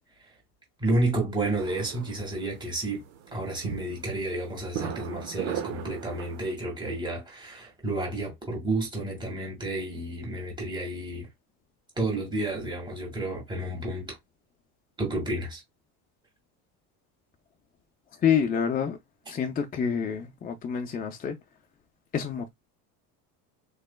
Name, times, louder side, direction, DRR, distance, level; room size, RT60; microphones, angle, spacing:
voice 1, 0.8-3.0 3.3-11.3 12.0-14.2 15.0-15.6, right 2 dB, 10° right, 1.9 m, -31 dB
sound 1, 1.6-6.5, right 9 dB, 75° right, 1.2 m, -38 dB
voice 2, 18.2-19.0 19.3-21.4 22.1-22.5, left 7 dB, 20° left, 0.5 m, -27 dB
4.0 x 3.2 x 2.2 m
cardioid pair, 140°, 41 cm